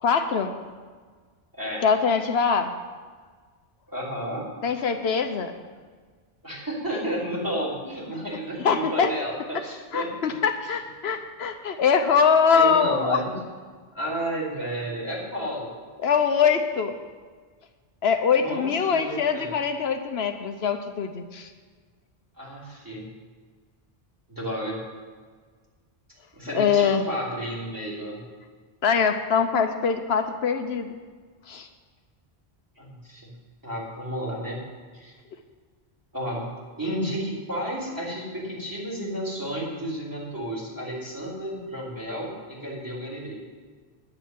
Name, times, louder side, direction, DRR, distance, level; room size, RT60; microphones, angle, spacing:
voice 1, 0.0-0.5 1.8-2.7 4.6-5.5 8.6-9.1 9.9-13.2 16.0-17.0 18.0-21.5 26.5-27.0 28.8-31.0 31.5-31.7, left 6 dB, 80° left, 7 dB, 1.1 m, -23 dB
voice 2, 1.5-1.8 3.9-4.5 6.4-10.1 12.5-13.4 13.9-15.7 18.4-19.5 22.4-23.0 24.3-24.8 26.3-28.2 32.8-33.3 33.6-34.6 34.9-35.1 36.1-36.5 36.8-43.4, equal, 20° right, -5 dB, 3.4 m, -32 dB
9.7 x 6.9 x 9.1 m, 1.5 s
omnidirectional pair, 1.0 m